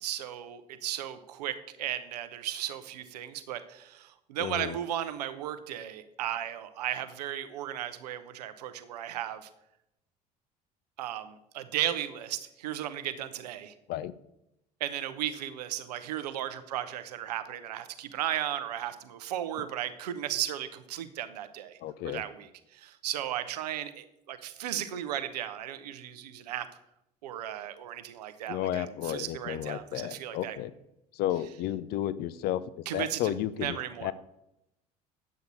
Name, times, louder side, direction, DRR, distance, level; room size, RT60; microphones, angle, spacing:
voice 1, 0.0-9.5 11.0-13.7 14.8-21.8 22.0-26.7 27.2-30.6 32.9-33.3 33.6-34.1, right 11 dB, 70° right, 11 dB, 0.8 m, -35 dB
voice 2, 4.4-4.8 13.9-14.1 21.8-22.2 28.5-30.7 31.1-34.1, left 12 dB, 50° left, 16 dB, 0.6 m, -33 dB
9.6 x 8.0 x 4.0 m, 0.85 s
figure-of-eight pair, 60°, 21 cm